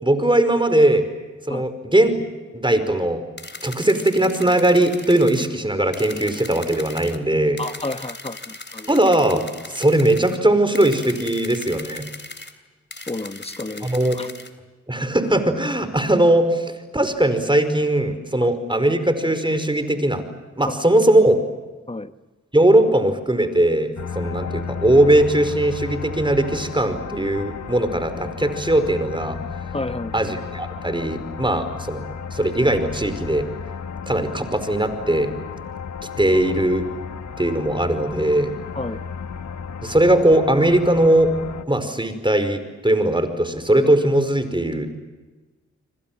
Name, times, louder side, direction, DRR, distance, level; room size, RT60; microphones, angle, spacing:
voice 1, 0.0-1.1 1.5-2.2 2.5-3.2 3.6-7.6 8.9-12.1 13.8-14.2 14.9-20.2 20.6-21.4 22.5-29.4 30.1-32.0 32.3-33.5 34.1-35.3 36.2-36.9 37.4-38.5 39.8-41.3 41.7-45.0, right 1 dB, 15° right, 10 dB, 5.1 m, -19 dB
sound 1, 3.4-5.5 5.9-7.2 7.6-10.4 10.7-12.5 12.9-14.5, left 2 dB, 40° left, 3.4 m, -39 dB
voice 2, 7.6-8.9 13.1-13.9 14.1-14.3 18.4-18.5 20.6-20.7 21.9-22.1 29.7-30.1 38.7-39.0, left 2 dB, 20° left, 11 dB, 1.5 m, -30 dB
sound 2, 24.0-41.6, left 6 dB, 70° left, 1.5 m, -34 dB
29.0 x 25.0 x 7.5 m, 1.2 s
cardioid pair, 45°, 29 cm